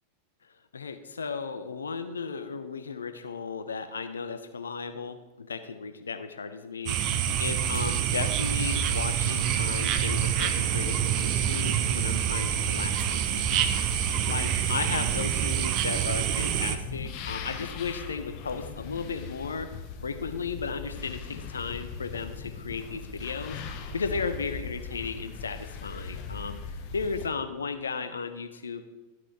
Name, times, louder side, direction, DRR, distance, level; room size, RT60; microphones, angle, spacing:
voice 1, 0.7-13.8 14.3-19.7 20.0-23.6 23.9-26.6 26.9-28.8, left 5 dB, 70° left, 10 dB, 0.7 m, -35 dB
sound 1, 6.9-16.8, right 9 dB, 40° right, 0.7 m, -27 dB
sound 2, 9.7-27.3, left 5 dB, 45° left, 0.9 m, -40 dB
12.0 x 6.0 x 4.7 m, 1.2 s
figure-of-eight pair, 90°, 0 cm